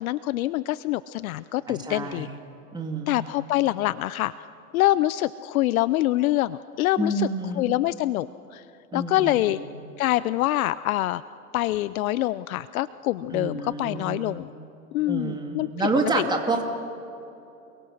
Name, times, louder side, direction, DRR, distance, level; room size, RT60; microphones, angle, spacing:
voice 1, 0.0-2.3 3.1-4.3 4.7-7.3 7.6-8.6 8.9-9.6 10.0-11.2 11.5-14.5 14.9-15.7 16.2-16.3, left 15 dB, 75° left, 16 dB, 0.7 m, -25 dB
voice 2, 1.7-2.3 2.7-3.1 7.0-7.7 8.9-9.7 13.3-14.2 15.1-16.6, right 3 dB, 10° right, 3 dB, 2.3 m, -28 dB
29.0 x 22.5 x 6.4 m, 2.8 s
supercardioid pair, 135°, 43 cm